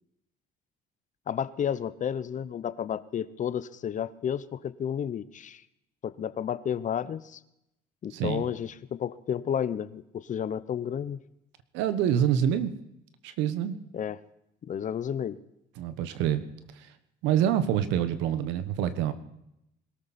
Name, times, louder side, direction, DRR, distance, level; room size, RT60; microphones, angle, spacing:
voice 1, 1.3-5.6 6.0-7.4 8.0-11.2 13.9-14.2 14.6-15.4, left 8 dB, 45° left, 17 dB, 0.8 m, -31 dB
voice 2, 8.1-8.4 11.7-12.7 13.2-13.8 15.8-16.4 17.2-19.1, right 10 dB, 90° right, 12 dB, 1.2 m, -26 dB
21.5 x 13.0 x 4.3 m, 0.82 s
cardioid pair, 100°, 18 cm